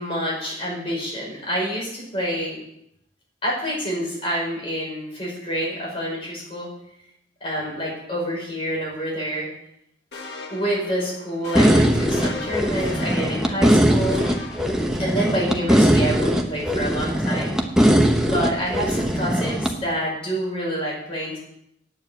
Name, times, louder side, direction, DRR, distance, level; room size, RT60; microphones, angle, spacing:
voice 1, 0.0-2.6 3.4-6.7 7.4-9.5 10.5-14.2 15.0-17.5 18.2-21.4, equal, 30° left, -4 dB, 5.6 m, -27 dB
sound 1, 10.1-15.4, left 3 dB, 60° left, 1.5 m, -38 dB
sound 2, 11.5-19.7, equal, 5° right, 0.9 m, -20 dB
9.3 x 7.6 x 7.6 m, 0.75 s
head